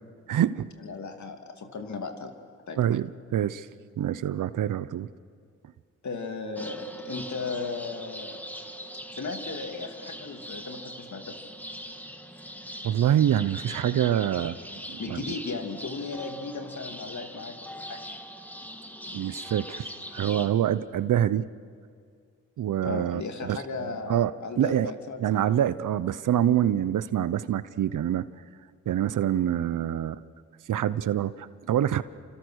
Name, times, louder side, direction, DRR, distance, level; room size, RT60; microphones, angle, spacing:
voice 1, 0.3-0.7 2.8-3.7 4.0-5.1 12.8-14.6 14.9-15.2 19.1-21.5 22.6-23.6 24.1-24.9 25.2-28.3 28.9-30.2 30.7-32.0, right 10 dB, 75° right, 16 dB, 0.8 m, -26 dB
voice 2, 0.8-2.3 2.7-2.9 6.0-8.4 9.1-11.4 15.0-18.1 22.8-25.4, left 4 dB, 65° left, 5 dB, 2.6 m, -36 dB
sound 1, 6.6-20.5, equal, 5° left, 2.4 m, -41 dB
29.5 x 25.5 x 6.4 m, 2.2 s
supercardioid pair, 45°, 31 cm